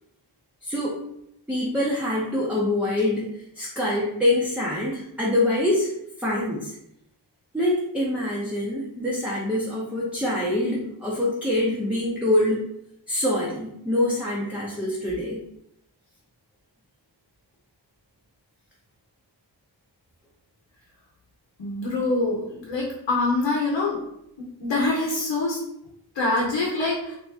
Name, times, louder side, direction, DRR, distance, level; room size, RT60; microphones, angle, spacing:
voice 1, 0.6-1.0 1.5-3.3 3.6-5.9 6.2-6.7 7.5-12.6 13.1-15.4, left 1 dB, 5° right, -6 dB, 0.6 m, -25 dB
voice 2, 21.6-24.0 24.4-25.6 26.1-27.2, left 2 dB, 80° left, -3 dB, 0.9 m, -25 dB
2.9 x 2.7 x 3.4 m, 0.78 s
wide cardioid pair, 110°, 43 cm